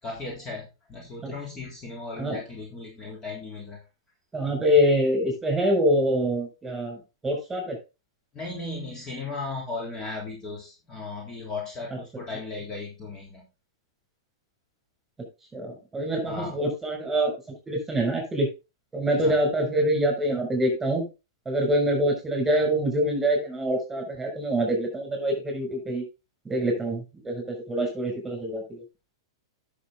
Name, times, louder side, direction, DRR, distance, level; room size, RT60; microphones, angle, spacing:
voice 1, 0.0-3.8 8.3-13.4 16.2-16.6 19.2-19.4, left 3 dB, 25° left, -1 dB, 3.3 m, -36 dB
voice 2, 4.3-7.8 15.5-17.3 17.7-18.5 18.9-21.1 21.4-26.0 26.4-28.8, equal, 10° right, 2 dB, 6.4 m, -25 dB
11.0 x 6.7 x 3.8 m, 0.28 s
hypercardioid pair, 110°, 2 cm